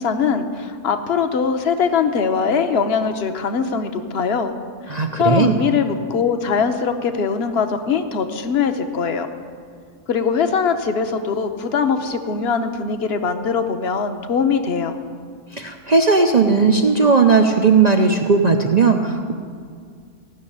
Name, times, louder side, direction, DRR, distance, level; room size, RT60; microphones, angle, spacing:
voice 1, 0.0-4.5 5.2-9.3 10.1-15.0, left 6 dB, 50° left, 7 dB, 1.0 m, -21 dB
voice 2, 4.9-5.5 15.5-19.3, right 4 dB, 55° right, 4 dB, 0.4 m, -16 dB
15.0 x 6.4 x 9.9 m, 2.1 s
omnidirectional pair, 1.6 m